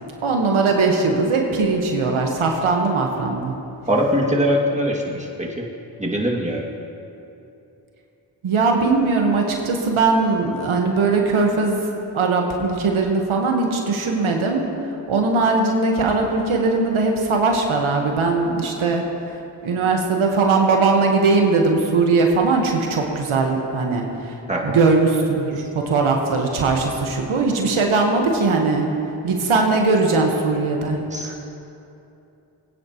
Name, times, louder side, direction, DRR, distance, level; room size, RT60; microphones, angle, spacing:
voice 1, 0.2-3.5 8.4-11.8 12.1-14.7 15.1-19.0 19.6-24.3 24.6-28.9 29.2-31.4, right 3 dB, 85° right, 1 dB, 1.4 m, -20 dB
voice 2, 3.9-5.7 6.0-6.7 24.5-24.8 31.1-31.4, equal, 15° right, -2 dB, 2.2 m, -22 dB
22.0 x 9.6 x 3.0 m, 2.8 s
cardioid pair, 45°, 48 cm